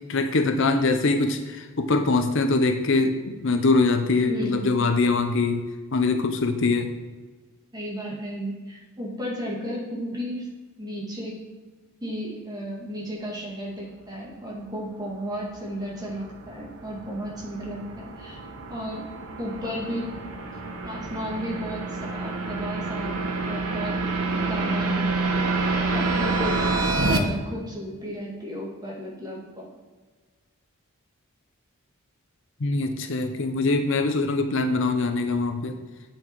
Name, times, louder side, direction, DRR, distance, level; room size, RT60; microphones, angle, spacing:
voice 1, 0.1-5.7 5.9-6.9 32.6-35.8, left 3 dB, 60° left, 7 dB, 0.7 m, -23 dB
voice 2, 4.2-4.7 7.7-10.5 10.8-11.3 12.0-18.4 18.7-19.0 19.4-20.2 20.8-23.2 23.5-24.0 24.3-24.9 25.9-29.7, equal, 15° right, -3 dB, 2.1 m, -34 dB
sound 1, 15.7-27.2, right 3 dB, 85° right, 1.1 m, -28 dB
9.0 x 5.8 x 4.6 m, 1.4 s
head